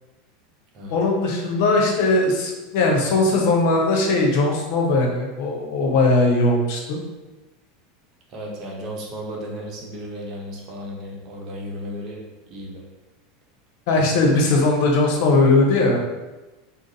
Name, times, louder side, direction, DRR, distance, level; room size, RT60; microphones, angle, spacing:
voice 1, 0.9-7.0 13.9-16.0, left 2 dB, 55° left, 0 dB, 0.8 m, -19 dB
voice 2, 8.3-12.8, equal, 45° right, -2 dB, 0.8 m, -34 dB
3.7 x 2.0 x 4.0 m, 1.1 s
figure-of-eight pair, 80°, 0 cm